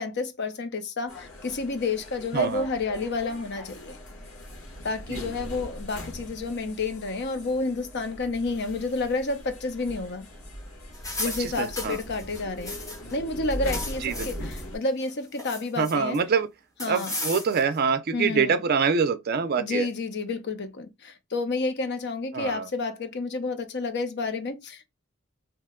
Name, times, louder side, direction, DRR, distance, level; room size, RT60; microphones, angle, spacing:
voice 1, 0.0-4.0 4.8-10.3 11.2-12.8 13.1-16.2 16.8-17.1 18.1-18.6 19.6-24.9, left 3 dB, 55° left, 0.6 m, -30 dB
sound 1, 1.1-14.8, equal, 90° left, 1.4 m, -40 dB
voice 2, 2.3-2.7 5.1-5.3 11.4-12.0 14.0-14.3 15.8-16.5 16.9-19.9 22.3-22.7, right 5 dB, 45° right, 0.4 m, -25 dB
sound 2, 10.9-13.1 13.4-14.6 15.0-16.2 16.8-17.8, left 2 dB, 15° left, 1.0 m, -36 dB
2.9 x 2.1 x 3.5 m
head